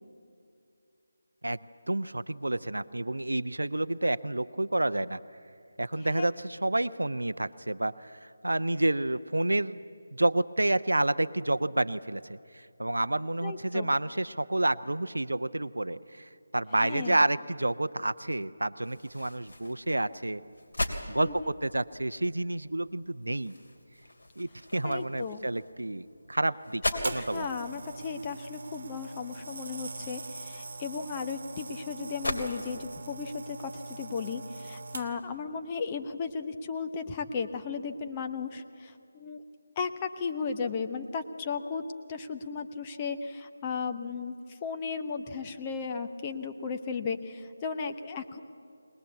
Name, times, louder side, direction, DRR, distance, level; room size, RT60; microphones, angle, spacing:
voice 1, 1.9-5.2 5.8-9.8 10.1-20.4 21.1-23.5 24.4-27.5, right 1 dB, 75° right, 13 dB, 0.6 m, -29 dB
voice 2, 13.4-13.9 16.8-17.2 21.2-21.6 24.8-25.5 26.9-39.4 39.8-41.8 42.1-48.4, left 5 dB, 20° left, 6 dB, 0.9 m, -35 dB
sound 1, 18.8-32.4, left 1 dB, 65° left, 3.0 m, -40 dB
sound 2, 27.0-35.4 36.1-36.3, right 3 dB, 50° right, 1.4 m, -42 dB
21.5 x 20.0 x 8.3 m, 2.4 s
figure-of-eight pair, 155°, 0 cm